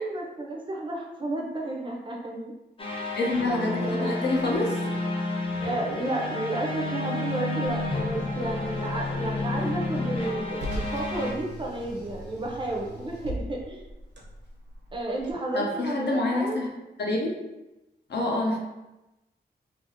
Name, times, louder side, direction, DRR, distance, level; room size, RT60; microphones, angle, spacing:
voice 1, 0.0-2.5 3.4-3.5 3.8-4.2 5.6-13.9 14.9-16.6, right 2 dB, 30° right, -1 dB, 0.4 m, -32 dB
sound 1, 2.8-11.3, left 2 dB, 30° left, 0.4 m, -30 dB
voice 2, 3.1-4.8 15.5-16.7 17.0-17.3 18.1-18.6, left 2 dB, 75° left, -1 dB, 0.6 m, -27 dB
Car, 7.6-15.3, right 1 dB, 85° right, 0.7 m, -40 dB
2.8 x 2.5 x 2.7 m, 0.99 s
wide cardioid pair, 170°, 18 cm